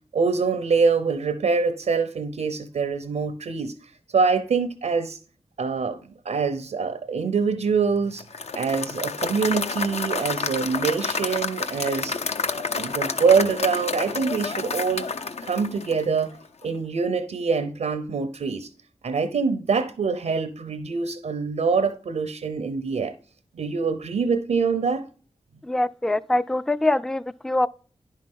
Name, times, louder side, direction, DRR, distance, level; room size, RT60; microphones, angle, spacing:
voice 1, 0.1-3.8 4.1-5.2 5.6-6.0 6.2-8.2 8.5-12.2 12.6-15.1 15.4-16.3 16.6-18.7 19.0-23.1 23.5-25.0, right 5 dB, 85° right, 0.7 m, -24 dB
Applause / Crowd, 8.2-16.4, left 4 dB, 60° left, 0.6 m, -29 dB
voice 2, 25.6-27.7, left 2 dB, 5° left, 0.3 m, -23 dB
10.0 x 5.4 x 3.6 m
cardioid pair, 45°, 12 cm